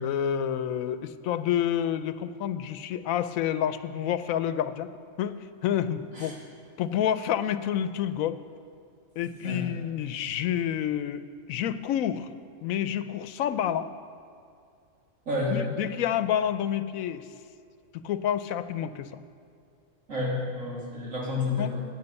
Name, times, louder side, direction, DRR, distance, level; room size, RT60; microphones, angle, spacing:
voice 1, 0.0-4.9 5.2-6.3 6.8-8.4 9.2-11.2 11.5-12.3 12.6-13.9 15.5-17.3 18.0-19.1 21.6-21.7, left 10 dB, 85° left, 13 dB, 1.0 m, -28 dB
voice 2, 15.3-15.6 20.1-21.9, left 2 dB, 75° right, -5 dB, 3.1 m, -30 dB
10.5 x 9.5 x 6.9 m, 2.4 s
omnidirectional pair, 1.4 m